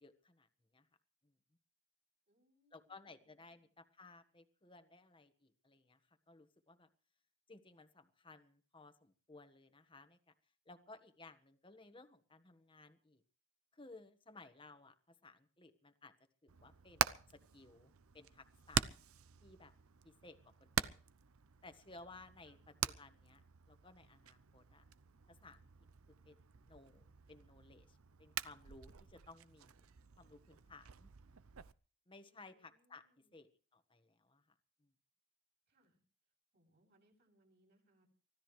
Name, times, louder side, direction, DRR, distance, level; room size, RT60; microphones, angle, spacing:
voice 1, 0.0-0.9 1.2-1.3 2.7-6.9 7.5-10.3 10.6-13.2 13.7-16.1 16.4-18.8 19.4-19.7 20.0-21.0 21.6-22.6 22.8-23.4 23.7-24.8 25.3-25.7 26.2-26.4 26.6-31.1 32.1-33.0 33.3-34.5 34.8-34.9, left 3 dB, 20° left, 9 dB, 1.4 m, -59 dB
voice 2, 2.3-3.7 22.4-22.7 32.2-33.3 35.7-36.0 36.5-38.1, right 1 dB, 50° right, 0 dB, 7.7 m, -75 dB
Hammer, 16.5-31.7, right 8 dB, 75° right, 0.7 m, -44 dB
24.5 x 15.5 x 3.3 m, 0.40 s
head